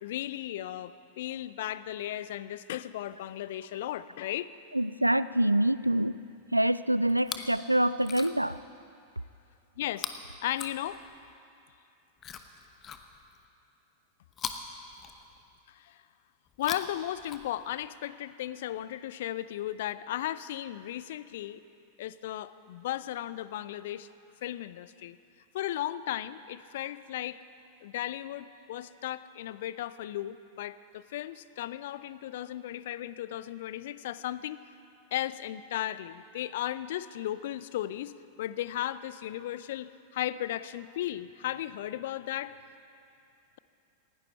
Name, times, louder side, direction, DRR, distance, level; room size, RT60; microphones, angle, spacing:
voice 1, 0.0-4.5 7.4-7.5 9.8-10.1 10.4-11.0 15.7-16.0 16.6-21.6 22.0-24.1 24.4-25.2 25.5-27.4 27.8-34.6 35.1-42.6, left 13 dB, 55° left, 16 dB, 0.5 m, -35 dB
voice 2, 4.7-6.2 6.5-8.6, right 1 dB, 85° right, 16 dB, 0.4 m, -26 dB
Chewing mastication, 7.1-7.6 8.0-8.6 9.9-11.3 12.2-13.5 14.3-15.6 16.5-17.9 18.8-18.9, left 7 dB, 25° left, 1.0 m, -42 dB
19.0 x 16.5 x 4.5 m, 2.6 s
figure-of-eight pair, 90°, 0 cm